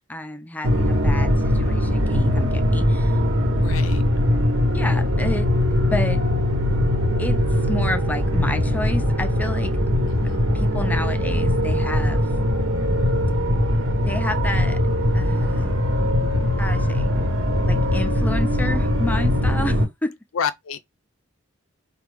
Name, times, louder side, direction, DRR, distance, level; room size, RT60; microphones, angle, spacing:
voice 1, 0.1-3.1 4.7-5.5 5.8-6.2 7.2-9.7 10.5-12.2 14.1-14.8 15.1-15.8 16.6-17.1 17.7-20.2, left 1 dB, 10° left, 0.4 m, -30 dB
sound 1, 0.6-19.8, left 1 dB, 75° right, 1.1 m, -21 dB
voice 2, 3.6-4.0 10.1-10.5 20.3-20.8, left 7 dB, 90° left, 0.5 m, -29 dB
4.7 x 2.3 x 3.4 m
head